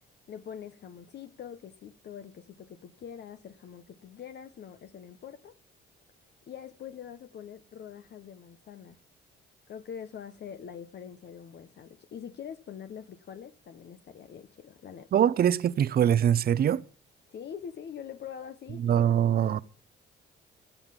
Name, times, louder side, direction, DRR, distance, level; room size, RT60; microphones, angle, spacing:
voice 1, 0.3-5.6 6.5-9.0 9.7-15.1 17.3-19.0 19.4-19.6, left 8 dB, 60° left, 0.9 m, -44 dB
voice 2, 15.1-16.8 18.8-19.6, right 9 dB, 50° right, 0.6 m, -23 dB
15.0 x 5.7 x 8.8 m
cardioid pair, 90°, 20 cm